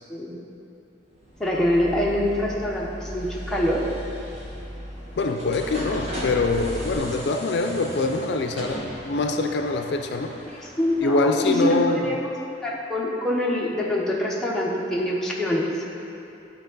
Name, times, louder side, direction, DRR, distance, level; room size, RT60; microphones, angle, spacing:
sound 1, 1.1-11.8, equal, 35° right, 1.4 m, -39 dB
sound 2, 1.3-6.9, equal, 20° left, 1.0 m, -38 dB
voice 1, 1.4-3.8 10.8-12.2 12.6-15.7, left 1 dB, 5° left, -5 dB, 0.8 m, -24 dB
voice 2, 5.2-10.4 11.0-12.2, left 3 dB, 70° left, 5 dB, 0.4 m, -24 dB
11.0 x 4.5 x 3.9 m, 2.8 s
head